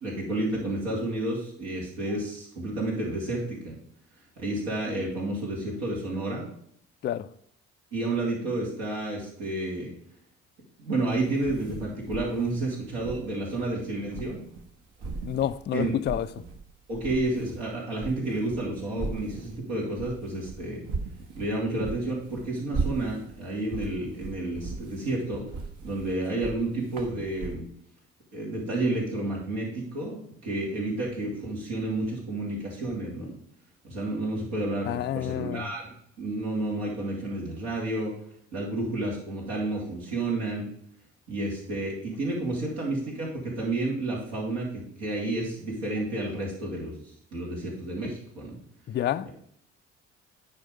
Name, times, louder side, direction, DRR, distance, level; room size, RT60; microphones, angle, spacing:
voice 1, 0.0-3.8 4.4-6.5 7.9-9.9 10.8-14.4 15.7-15.9 16.9-20.8 21.3-25.4 25.8-27.7 28.3-33.3 33.8-38.1 38.5-40.7 41.3-47.0 47.3-48.6, right 2 dB, 70° right, 2.9 m, -30 dB
sound 1, 11.1-14.7 15.0-16.6 16.9-27.5, right 4 dB, 55° right, 1.3 m, -38 dB
voice 2, 15.2-16.3 34.9-35.7 48.9-49.3, left 11 dB, 30° left, 0.4 m, -28 dB
9.6 x 4.5 x 5.0 m
figure-of-eight pair, 45°, 37 cm